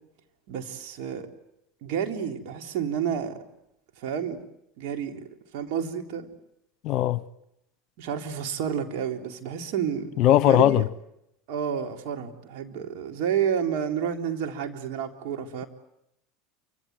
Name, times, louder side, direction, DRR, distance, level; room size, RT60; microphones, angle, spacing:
voice 1, 0.5-1.3 1.8-3.4 4.0-4.4 4.8-5.3 5.5-6.3 8.0-10.1 10.4-10.8 11.5-15.7, right 8 dB, 60° right, 3.6 m, -30 dB
voice 2, 6.8-7.2 10.2-10.9, left 12 dB, 55° left, 1.0 m, -19 dB
28.0 x 25.5 x 8.0 m
hypercardioid pair, 80°, 0 cm